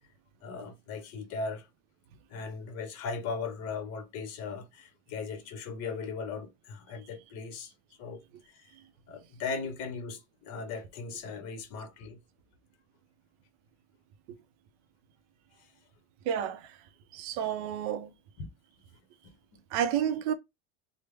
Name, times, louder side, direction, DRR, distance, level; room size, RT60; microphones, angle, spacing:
voice 1, 0.4-1.7 2.3-7.7 8.0-8.2 8.5-8.6 9.1-12.2 15.6-15.7 18.4-18.5 19.2-19.3, left 4 dB, 45° left, 0.9 m, -38 dB
voice 2, 16.3-16.6 17.1-18.1 19.7-20.3, right 9 dB, 50° right, 0.5 m, -30 dB
3.2 x 2.1 x 3.3 m
supercardioid pair, 150°, 35 cm